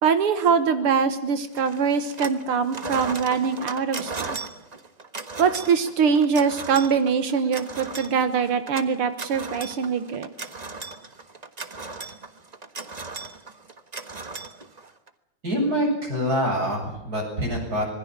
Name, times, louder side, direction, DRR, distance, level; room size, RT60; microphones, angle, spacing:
voice 1, 0.0-4.4 5.4-10.3, right 6 dB, 80° right, 10 dB, 2.2 m, -23 dB
sound 1, 1.6-2.4 2.7-15.1, right 3 dB, 25° right, 1.0 m, -37 dB
voice 2, 15.4-17.9, equal, 40° right, 1 dB, 8.5 m, -25 dB
26.0 x 21.0 x 7.5 m, 0.79 s
omnidirectional pair, 2.4 m